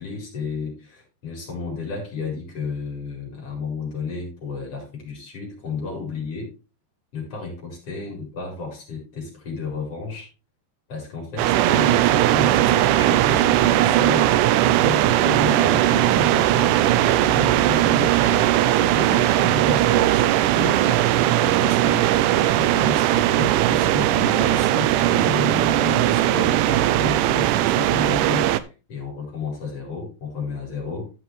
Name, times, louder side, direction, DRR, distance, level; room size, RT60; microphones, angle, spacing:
voice 1, 0.0-6.5 7.1-10.3 10.9-16.9 17.2-20.8 21.3-22.1 22.5-31.1, left 4 dB, 45° left, -1 dB, 5.5 m, -32 dB
sound 1, 11.4-28.6, right 13 dB, 80° right, 2.1 m, -19 dB
14.5 x 6.3 x 3.2 m, 0.30 s
omnidirectional pair, 3.9 m